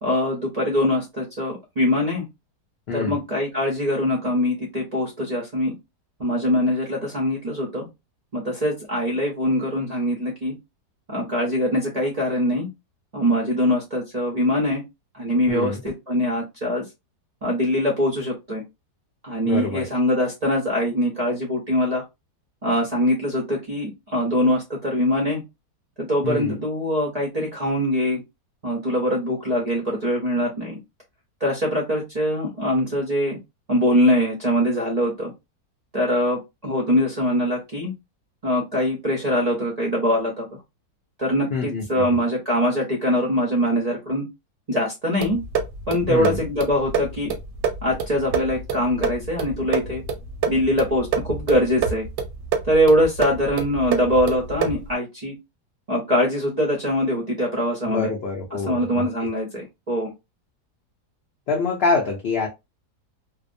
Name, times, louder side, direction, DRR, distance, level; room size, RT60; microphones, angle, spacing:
voice 1, 0.0-2.2 2.9-5.7 6.2-7.9 8.3-10.5 11.1-12.7 13.1-14.8 15.1-16.8 17.4-18.6 19.2-22.0 22.6-25.4 26.0-28.2 28.6-30.8 31.4-33.4 33.7-35.3 35.9-37.9 38.4-40.5 41.2-44.3 44.7-45.4 45.9-47.3 47.8-50.0 50.5-52.1 52.6-55.3 55.9-58.1 58.5-60.1, equal, 55° right, 0.4 m, -23 dB
voice 2, 2.9-3.2 15.5-15.8 19.4-19.9 26.2-26.6 41.5-41.8 46.1-46.4 57.8-59.0 61.5-62.5, left 4 dB, 85° left, 0.5 m, -25 dB
sound 1, 45.2-54.9, right 6 dB, 85° right, 1.2 m, -28 dB
2.7 x 2.0 x 2.5 m
omnidirectional pair, 1.7 m